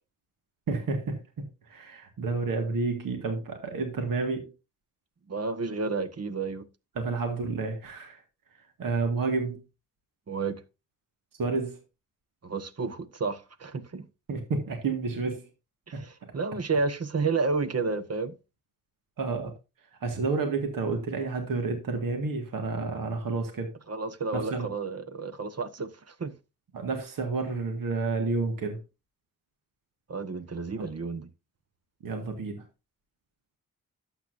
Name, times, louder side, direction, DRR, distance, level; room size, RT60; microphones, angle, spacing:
voice 1, 0.7-4.5 7.0-8.2 8.5-9.6 11.4-11.8 14.3-15.5 15.9-16.0 19.2-19.5 20.0-23.7 24.3-24.7 26.7-28.8 30.8-30.9 32.0-32.6, right 4 dB, 65° right, 1.9 m, -30 dB
voice 2, 5.3-6.7 10.3-10.6 12.4-14.0 15.9-18.3 23.9-26.3 30.1-31.3, right 4 dB, 45° right, 1.3 m, -31 dB
12.0 x 7.4 x 2.6 m
supercardioid pair, 45°, 35 cm